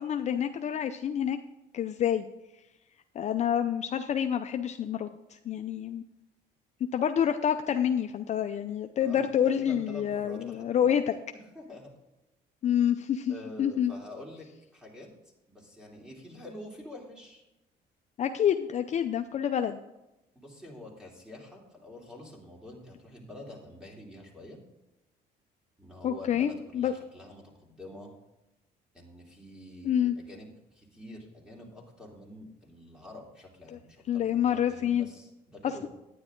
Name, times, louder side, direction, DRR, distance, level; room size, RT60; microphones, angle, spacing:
voice 1, 0.0-1.4 1.7-2.3 3.2-5.1 5.5-6.0 6.9-11.0 12.6-13.9 18.2-19.8 26.0-26.9 29.8-30.1 34.1-35.1, left 9 dB, 45° left, 8 dB, 0.5 m, -27 dB
voice 2, 9.0-11.9 13.3-15.1 15.5-17.4 20.3-24.6 25.8-28.1 28.9-35.9, left 1 dB, 5° right, -1 dB, 3.0 m, -47 dB
10.0 x 9.8 x 3.7 m, 0.94 s
cardioid pair, 110°, 17 cm